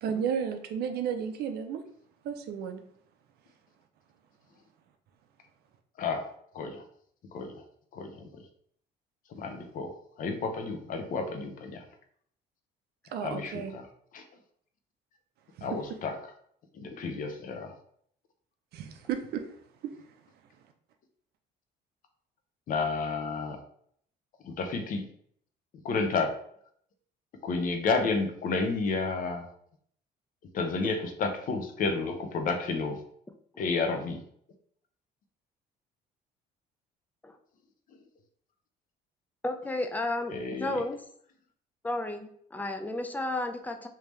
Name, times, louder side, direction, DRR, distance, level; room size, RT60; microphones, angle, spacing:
voice 1, 0.0-1.8 2.2-2.8 13.1-13.7 15.6-15.8 18.7-19.4, right 7 dB, 70° right, 7 dB, 0.5 m, -33 dB
voice 2, 7.3-7.6 7.9-8.2 9.3-9.9 10.2-11.8 13.2-13.8 14.1-14.2 15.6-16.1 16.8-17.7 22.7-23.6 24.4-25.0 25.8-26.3 27.4-29.4 30.5-33.0 33.6-34.2 40.3-40.7, left 4 dB, 55° left, 6 dB, 0.7 m, -31 dB
voice 3, 39.4-41.0 41.8-43.9, left 2 dB, 10° left, 6 dB, 0.4 m, -33 dB
3.5 x 2.7 x 3.1 m, 0.65 s
cardioid pair, 110°, 17 cm